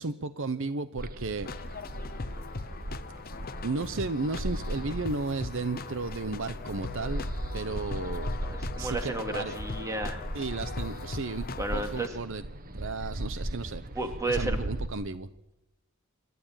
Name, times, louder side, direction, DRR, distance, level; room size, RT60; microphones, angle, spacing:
voice 1, 0.0-1.5 3.6-7.2 7.5-8.3 8.8-9.5 10.3-12.4 12.7-13.8 14.3-15.3, right 3 dB, 60° right, 12 dB, 0.8 m, -34 dB
sound 1, 1.0-14.9, right 1 dB, 40° right, 1.3 m, -37 dB
sound 2, 1.4-12.1, left 4 dB, 40° left, 0.7 m, -40 dB
voice 2, 8.4-10.3 11.6-12.2 14.0-14.6, right 2 dB, 15° right, 4 dB, 2.6 m, -33 dB
27.0 x 12.5 x 8.9 m, 0.93 s
head